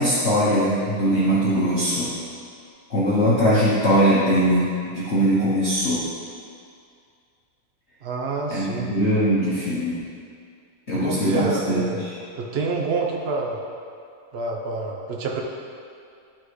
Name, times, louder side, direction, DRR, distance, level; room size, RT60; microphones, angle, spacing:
voice 1, 0.0-2.1 2.9-6.0 8.5-10.0 10.9-12.1, equal, 45° left, -9 dB, 1.1 m, -21 dB
voice 2, 8.0-8.9 10.9-12.0 12.4-13.6 14.3-15.4, right 3 dB, 55° right, 0 dB, 0.7 m, -27 dB
11.5 x 4.2 x 3.2 m, 2.3 s
omnidirectional pair, 2.0 m